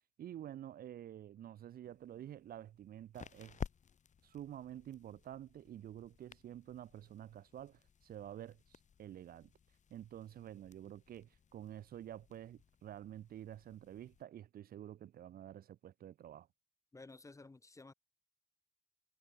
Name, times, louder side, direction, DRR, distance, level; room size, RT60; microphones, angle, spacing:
voice 1, 0.2-3.6 4.2-9.5 9.9-16.5, right 11 dB, 65° right, 0.5 m, -49 dB
sound 1, 1.8-14.2, left 7 dB, 45° left, 1.0 m, -54 dB
voice 2, 16.9-17.9, left 3 dB, 20° left, 1.2 m, -54 dB
cardioid pair, 120°, 17 cm